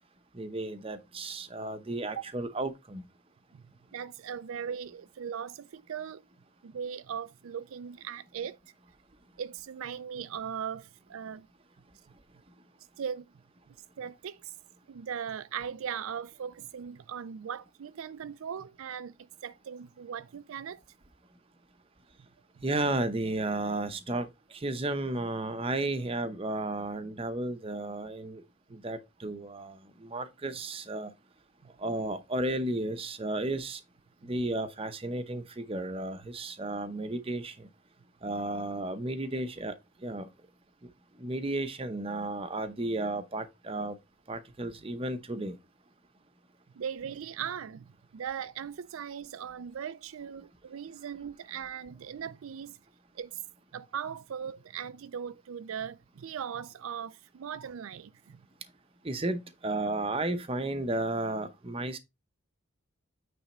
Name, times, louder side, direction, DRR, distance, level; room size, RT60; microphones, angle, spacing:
voice 1, 0.3-3.0 22.6-28.4 28.7-31.1 31.8-33.8 34.2-37.7 38.2-39.7 40.0-40.3 41.2-44.0 44.3-45.6 59.0-62.0, right 2 dB, 25° right, 0.7 m, -33 dB
voice 2, 3.9-6.2 6.6-8.6 9.4-11.5 13.0-13.3 13.7-14.5 14.9-19.1 19.4-20.8 22.6-22.7 34.2-34.3 46.8-52.8 53.1-53.4 53.7-58.4, right 8 dB, 75° right, 0.4 m, -39 dB
8.9 x 3.4 x 4.2 m
head